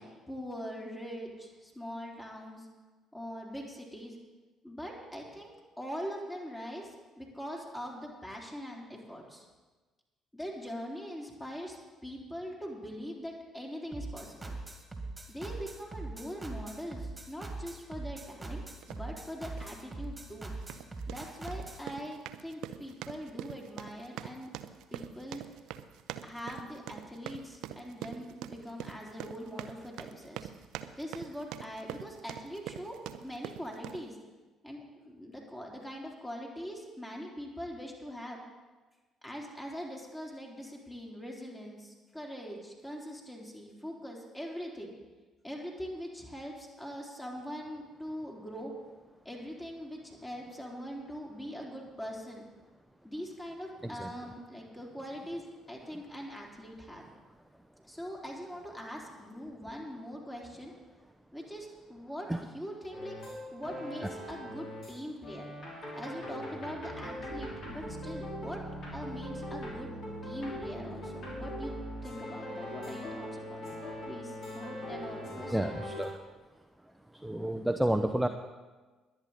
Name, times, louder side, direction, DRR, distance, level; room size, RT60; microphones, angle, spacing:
voice 1, 0.0-2.7 3.1-4.2 4.6-9.5 10.3-14.6 15.3-18.6 18.9-20.5 21.1-24.5 24.9-25.5 26.2-30.5 31.0-34.2 34.6-38.4 39.2-44.9 45.4-48.7 49.3-52.5 53.0-57.0 57.8-60.7 61.3-63.2 63.5-65.5 65.9-68.6 68.9-71.8 72.0-73.8 74.1-75.6, equal, 15° left, -1 dB, 3.6 m, -42 dB
sound 1, 13.9-21.8, right 3 dB, 20° right, 2.2 m, -42 dB
sound 2, 18.8-19.0 19.6-19.8 20.5-34.1, right 11 dB, 60° right, 0.6 m, -44 dB
sound 3, 62.9-65.0 65.2-76.1, equal, 50° left, 4.6 m, -41 dB
voice 2, 75.5-76.2 77.1-78.3, right 1 dB, 5° right, 6 dB, 0.8 m, -30 dB
21.5 x 9.0 x 4.2 m, 1.3 s
figure-of-eight pair, 45°, 0 cm